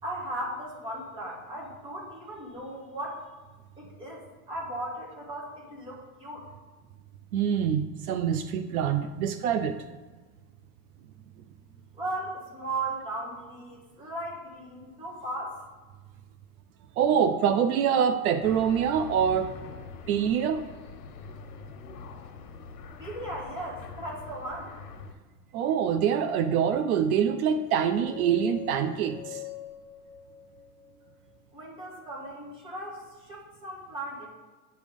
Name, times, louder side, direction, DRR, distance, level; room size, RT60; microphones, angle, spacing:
voice 1, 0.0-3.3 3.8-6.5 11.7-15.6 23.0-24.8 31.5-34.3, right 1 dB, 10° right, -4 dB, 1.5 m, -37 dB
voice 2, 7.3-9.8 17.0-19.6 20.1-20.7 25.5-29.4, right 8 dB, 70° right, 9 dB, 0.6 m, -25 dB
sound 1, 18.4-25.1, left 4 dB, 85° left, 1.1 m, -44 dB
sound 2, 27.7-31.8, left 14 dB, 10° left, 1.0 m, -45 dB
9.1 x 3.4 x 5.3 m, 1.3 s
supercardioid pair, 170°, 45 cm